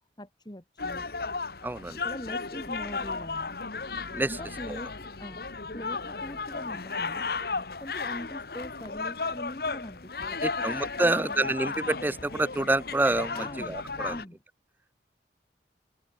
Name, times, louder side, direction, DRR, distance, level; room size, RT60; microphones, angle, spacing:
voice 1, 0.2-1.1 2.0-3.7 4.3-7.3 7.8-11.6 13.3-14.4, left 1 dB, 25° left, 2.6 m, -42 dB
sound 1, 0.8-14.3, left 4 dB, 55° left, 1.4 m, -34 dB
voice 2, 1.6-2.0 4.1-4.4 4.7-4.8 10.4-13.4 13.7-14.1, right 2 dB, 10° right, 0.3 m, -27 dB
open air
head